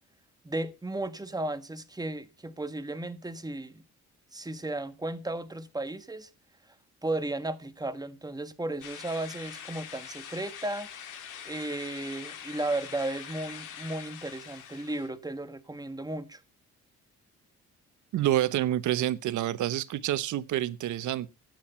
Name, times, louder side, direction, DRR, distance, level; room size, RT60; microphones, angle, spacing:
voice 1, 0.4-3.8 4.3-6.3 7.0-10.9 11.4-16.4, right 2 dB, 15° right, 1.4 m, -34 dB
sound 1, 8.8-15.1, left 8 dB, 90° left, 2.2 m, -44 dB
voice 2, 18.1-21.3, right 13 dB, 75° right, 0.9 m, -28 dB
12.0 x 9.2 x 5.6 m
cardioid pair, 90°, 30 cm